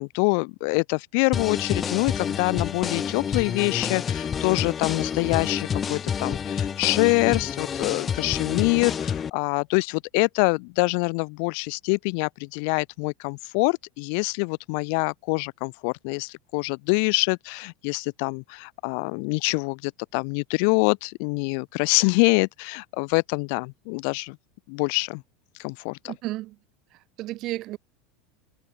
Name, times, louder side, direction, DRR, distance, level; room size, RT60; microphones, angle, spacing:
voice 1, 0.0-24.4 24.7-25.2 25.6-26.2, left 38 dB, 65° left, 0.4 m, -25 dB
sound 1, 1.3-9.3, left 7 dB, 25° left, 1.0 m, -28 dB
voice 2, 26.0-26.5 27.2-27.8, right 17 dB, 50° right, 1.6 m, -32 dB
supercardioid pair, 115°, 0 cm